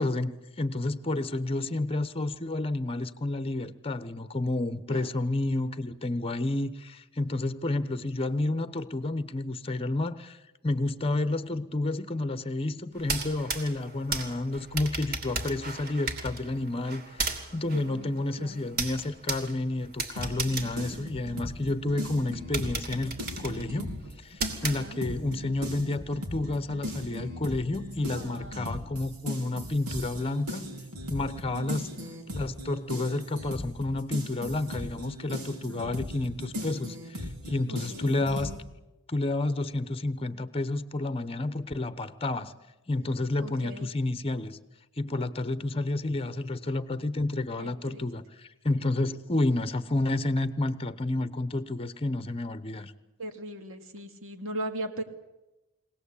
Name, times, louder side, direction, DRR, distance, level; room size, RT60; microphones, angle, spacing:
voice 1, 0.0-30.8 31.1-31.9 32.3-38.5 39.1-42.5 42.9-44.6 45.0-52.9, left 2 dB, 25° left, 14 dB, 1.0 m, -30 dB
sound 1, 13.0-21.7 22.1-22.2 22.5-25.3, right 3 dB, 45° right, 2.9 m, -36 dB
voice 2, 17.7-18.1 18.4-18.7 24.6-25.0 28.2-28.7 31.5-31.8 35.6-36.1 37.7-38.1 43.4-43.9 47.6-48.0 53.2-55.0, right 1 dB, 65° right, 6 dB, 2.3 m, -39 dB
sound 2, 20.2-24.1 24.4-38.6, left 1 dB, 90° right, 4.3 m, -38 dB
23.0 x 18.0 x 8.5 m, 1.0 s
head